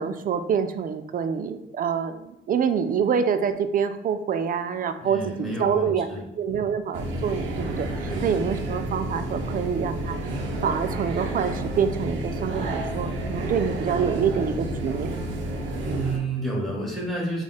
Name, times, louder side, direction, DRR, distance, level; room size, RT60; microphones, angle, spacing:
voice 1, 0.0-5.3 5.6-6.1 6.4-10.2 10.6-15.3, right 7 dB, 45° right, 9 dB, 0.4 m, -26 dB
voice 2, 5.0-6.7 8.0-8.3 15.8-17.4, right 2 dB, ahead, -4 dB, 1.3 m, -30 dB
sound 1, 6.9-16.2, right 1 dB, 75° right, 0.7 m, -30 dB
3.4 x 2.4 x 4.0 m, 0.87 s
cardioid pair, 90°, 20 cm